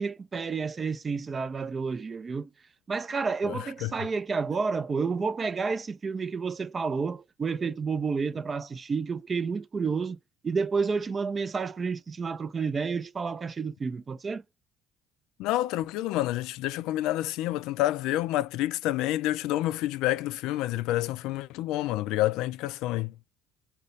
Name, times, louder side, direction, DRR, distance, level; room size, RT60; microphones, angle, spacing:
voice 1, 0.0-2.5 2.9-10.2 10.4-14.4, right 5 dB, 30° right, 0.4 m, -30 dB
voice 2, 3.4-3.9 15.4-23.1, left 15 dB, 85° left, 0.4 m, -28 dB
4.0 x 2.1 x 3.1 m
cardioid pair, 115°, 0 cm